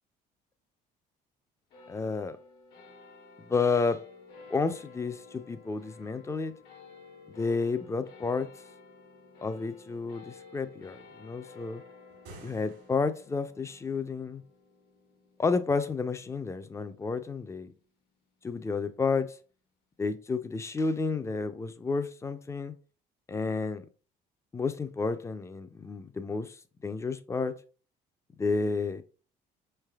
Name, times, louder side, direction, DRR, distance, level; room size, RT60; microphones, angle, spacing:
sound 1, 1.7-18.4, left 4 dB, 70° left, 1.1 m, -53 dB
voice 1, 1.9-2.4 3.4-4.0 4.5-6.5 7.4-8.5 9.4-11.8 12.4-14.4 15.4-17.7 18.4-19.4 20.0-22.7 23.3-23.8 24.5-26.6 26.8-27.5 28.4-29.0, left 4 dB, 15° left, 0.4 m, -31 dB
sound 2, 12.1-13.4, right 2 dB, 80° right, 1.3 m, -51 dB
5.2 x 3.3 x 2.3 m
cardioid pair, 110°, 17 cm